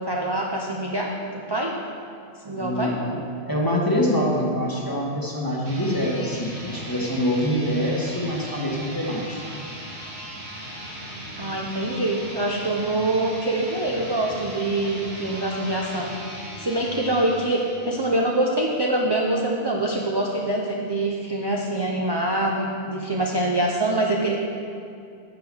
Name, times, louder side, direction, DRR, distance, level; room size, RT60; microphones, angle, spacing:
voice 1, 0.0-1.7 2.4-2.9 11.4-24.4, right 1 dB, 25° right, -1 dB, 0.7 m, -25 dB
voice 2, 2.6-3.2 3.5-9.4, equal, 20° left, -3 dB, 1.6 m, -25 dB
sound 1, 5.6-18.3, equal, 70° right, 2.0 m, -38 dB
9.4 x 6.9 x 6.2 m, 2.5 s
omnidirectional pair, 1.1 m